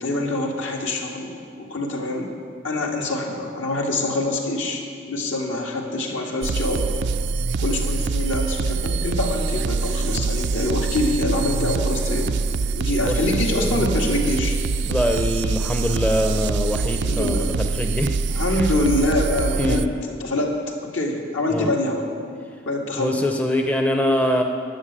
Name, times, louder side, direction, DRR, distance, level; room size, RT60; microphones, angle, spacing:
voice 1, 0.0-2.3 2.6-6.8 7.6-12.4 12.7-14.6 17.0-17.6 18.3-20.6 20.9-22.1 22.7-23.2, left 2 dB, 70° left, 0 dB, 2.0 m, -25 dB
sound 1, 6.4-19.9, right 4 dB, 60° right, 0.4 m, -24 dB
voice 2, 13.5-13.8 14.9-18.1 18.5-18.7 19.6-19.9 21.5-21.7 23.0-24.4, left 1 dB, 5° left, 3 dB, 0.6 m, -23 dB
12.5 x 7.1 x 10.0 m, 2.3 s
head